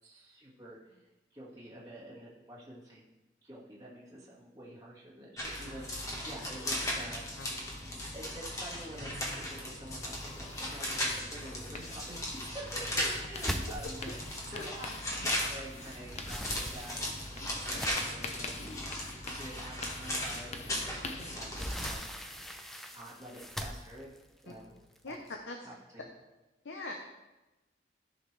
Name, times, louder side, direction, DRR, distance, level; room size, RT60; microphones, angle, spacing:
voice 1, 0.0-3.1 3.4-7.3 7.9-14.2 14.4-18.5 19.4-22.4 22.9-24.1 24.4-25.1 25.6-26.1, right 1 dB, 15° right, -7 dB, 1.8 m, -48 dB
sound 1, 5.4-21.9, left 1 dB, 15° left, 1.4 m, -37 dB
voice 2, 7.4-7.5 14.5-14.6 21.2-21.3 25.0-25.2 25.5-25.6 26.6-26.9, left 2 dB, 80° left, 3 dB, 0.8 m, -41 dB
sound 2, 10.0-22.6, left 3 dB, 35° left, 0.7 m, -47 dB
sound 3, 13.4-15.6 15.9-18.3 18.9-19.0 19.5-19.6 21.0-25.3, equal, ahead, 0.5 m, -41 dB
14.0 x 5.8 x 3.3 m, 1.1 s
head